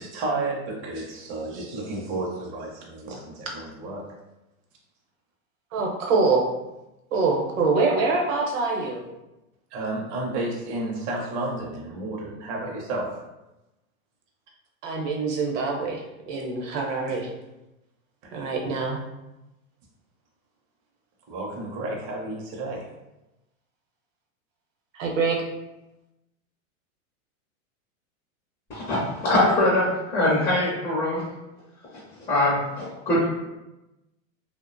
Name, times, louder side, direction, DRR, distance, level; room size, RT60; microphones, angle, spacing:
voice 1, 0.0-4.0 9.7-13.2 21.3-22.9, right 2 dB, 35° right, -2 dB, 0.5 m, -31 dB
voice 2, 5.7-6.4 7.1-9.0 14.8-17.3 18.3-19.0 24.9-25.4, right 4 dB, 65° right, 0 dB, 0.8 m, -24 dB
voice 3, 28.7-31.2 32.3-33.2, left 1 dB, 20° left, -8 dB, 0.5 m, -22 dB
2.5 x 2.0 x 2.5 m, 0.97 s
supercardioid pair, 140°, 42 cm